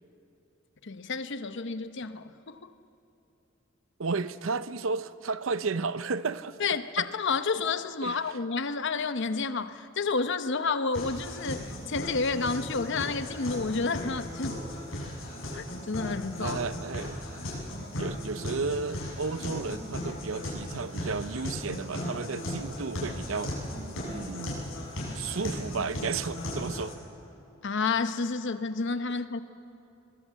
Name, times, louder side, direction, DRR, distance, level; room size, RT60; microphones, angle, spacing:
voice 1, 0.8-2.7 6.6-14.6 15.5-16.6 27.6-29.4, left 4 dB, 60° left, 11 dB, 0.8 m, -30 dB
voice 2, 4.0-6.6 7.0-7.1 8.0-8.2 16.4-17.2 18.0-23.5 24.1-24.7 25.1-27.0, right 4 dB, 75° right, 14 dB, 0.7 m, -33 dB
sound 1, 10.9-26.9, left 1 dB, 80° left, 6.8 m, -36 dB
22.0 x 21.5 x 7.5 m, 2.8 s
head